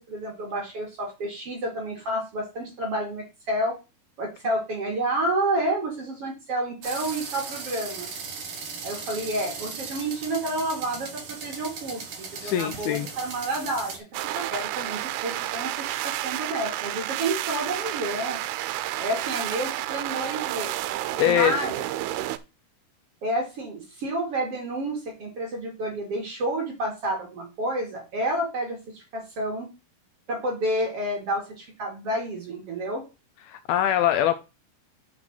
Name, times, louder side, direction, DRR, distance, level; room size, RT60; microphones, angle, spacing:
voice 1, 0.1-3.7 4.2-8.1 8.8-14.0 14.3-18.4 19.0-20.7 21.2-21.8 23.2-29.7 30.3-33.0, right 1 dB, 45° right, 2.6 m, -30 dB
sound 1, 6.8-14.0, right 5 dB, 60° right, 1.5 m, -37 dB
voice 2, 12.4-13.1 21.2-21.5 33.5-34.3, left 11 dB, 80° left, 2.3 m, -23 dB
sound 2, 14.1-22.4, right 14 dB, 80° right, 2.5 m, -30 dB
5.9 x 5.7 x 6.3 m
omnidirectional pair, 4.8 m